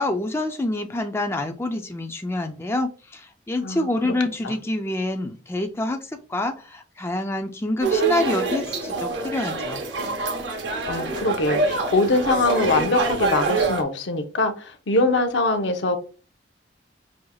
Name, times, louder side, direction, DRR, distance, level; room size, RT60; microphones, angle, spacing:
voice 1, 0.0-9.8, left 2 dB, 15° left, 4 dB, 0.4 m, -27 dB
sound 1, 7.8-13.8, right 3 dB, 70° right, 0.8 m, -25 dB
voice 2, 10.9-16.0, left 2 dB, 75° left, 7 dB, 0.7 m, -22 dB
6.2 x 2.8 x 2.3 m, 0.36 s
head